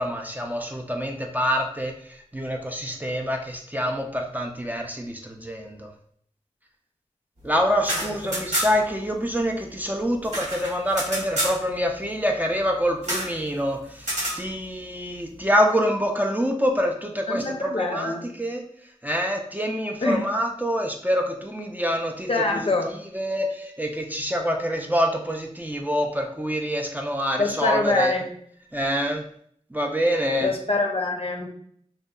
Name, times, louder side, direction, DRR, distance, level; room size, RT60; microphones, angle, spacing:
voice 1, 0.0-5.9 7.4-18.6 19.0-22.7 23.1-28.1 28.7-29.2 29.7-30.5, equal, 15° right, 1 dB, 0.4 m, -26 dB
sound 1, 7.7-9.0 9.2-9.3 9.6-11.6 13.0-13.3 14.0-14.4, right 1 dB, 75° right, 1.1 m, -28 dB
voice 2, 8.0-8.4 17.3-18.2 20.0-20.2 22.3-22.9 27.4-28.2 30.4-31.5, left 2 dB, 50° left, 2 dB, 0.5 m, -25 dB
2.6 x 2.2 x 2.2 m, 0.63 s
wide cardioid pair, 40°, 12 cm